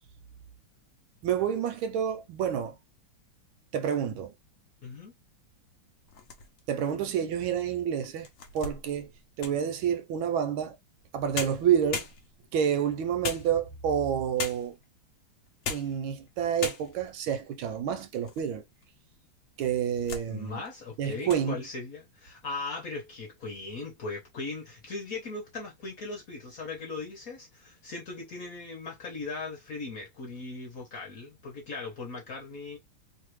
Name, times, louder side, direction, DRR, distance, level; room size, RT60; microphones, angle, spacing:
voice 1, 1.2-2.7 3.7-4.3 6.7-8.3 8.5-9.1 9.4-10.8 11.1-12.1 12.5-14.8 15.7-18.6 19.6-20.6 21.0-21.6, right 8 dB, 80° right, 1.4 m, -28 dB
voice 2, 4.8-5.1 20.3-32.8, left 3 dB, 55° left, 1.0 m, -39 dB
sound 1, 6.1-6.8 7.4-7.5 8.0-9.7 11.0-11.1 11.3-12.6 13.2-13.9 14.4-14.8 15.5-16.0 16.3-16.4 16.6-17.2 17.7-18.5 18.8-18.9 19.6-20.3 20.7-20.9 21.2-21.5, left 5 dB, 80° left, 0.7 m, -38 dB
3.3 x 2.4 x 3.0 m
omnidirectional pair, 2.3 m